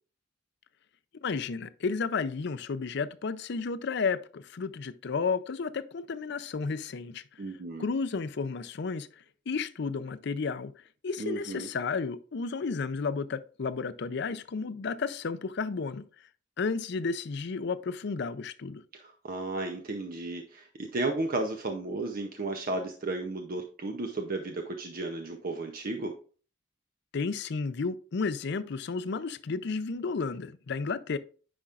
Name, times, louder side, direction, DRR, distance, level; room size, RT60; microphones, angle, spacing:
voice 1, 1.2-7.2 7.8-9.1 9.5-10.7 11.0-16.0 16.6-18.8 27.1-31.2, left 4 dB, 60° left, 0.5 m, -32 dB
voice 2, 7.4-7.8 11.2-11.7 18.9-26.1, right 2 dB, 50° right, 0.7 m, -34 dB
9.8 x 5.1 x 2.4 m
head